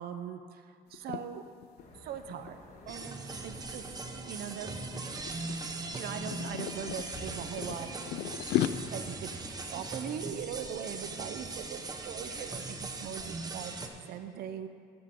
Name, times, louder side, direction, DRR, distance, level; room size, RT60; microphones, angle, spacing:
voice 1, 0.0-1.4 2.0-2.6 2.9-3.8 4.3-5.2 5.9-7.9 8.8-9.3 9.7-14.7, right 8 dB, 70° right, 9 dB, 0.7 m, -41 dB
sound 1, 0.9-1.2 1.6-1.8 2.1-4.0 4.7-5.0 5.3-7.1 7.6-8.7, left 13 dB, 75° left, 0.4 m, -34 dB
sound 2, 1.8-9.9, left 2 dB, 50° left, 1.8 m, -51 dB
sound 3, 2.9-13.9, right 3 dB, 20° right, 0.9 m, -40 dB
12.5 x 9.0 x 3.7 m, 2.1 s
cardioid pair, 110°, 17 cm